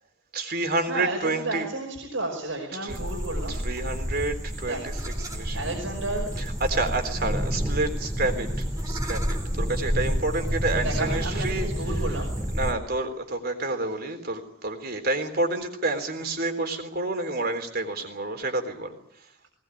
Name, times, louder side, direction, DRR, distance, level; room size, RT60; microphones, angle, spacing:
voice 1, 0.3-1.7 2.8-3.0 3.5-4.9 5.2-5.6 6.6-11.7 12.5-19.0, right 2 dB, 55° right, 6 dB, 3.8 m, -29 dB
voice 2, 0.8-3.7 4.6-4.9 5.2-6.5 10.8-12.4 16.2-16.3 19.4-19.5, right 2 dB, 90° right, 0 dB, 5.4 m, -32 dB
sound 1, 2.9-12.7, equal, 15° right, 2.9 m, -29 dB
20.0 x 20.0 x 9.9 m, 0.81 s
head